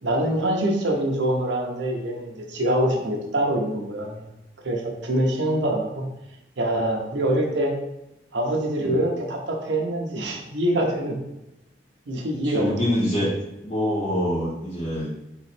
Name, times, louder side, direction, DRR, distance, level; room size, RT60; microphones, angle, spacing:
voice 1, 0.0-4.2 4.6-6.1 6.6-7.7 8.3-11.2 12.1-12.9, right 1 dB, 85° right, 0 dB, 0.8 m, -24 dB
voice 2, 12.4-13.3 13.6-15.1, equal, 35° left, -9 dB, 1.0 m, -25 dB
3.7 x 3.1 x 4.3 m, 0.93 s
head